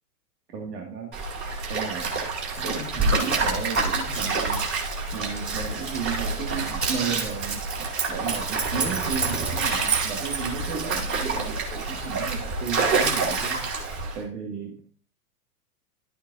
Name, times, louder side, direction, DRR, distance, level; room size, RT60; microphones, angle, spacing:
voice 1, 0.5-1.2 1.7-2.1 2.6-4.7 5.1-7.6 8.1-13.7 14.1-14.8, right 6 dB, 75° right, 0 dB, 2.4 m, -34 dB
Stream, 1.1-14.2, right 4 dB, 25° right, 4.0 m, -27 dB
13.0 x 9.0 x 2.7 m, 0.41 s
hypercardioid pair, 120°, 49 cm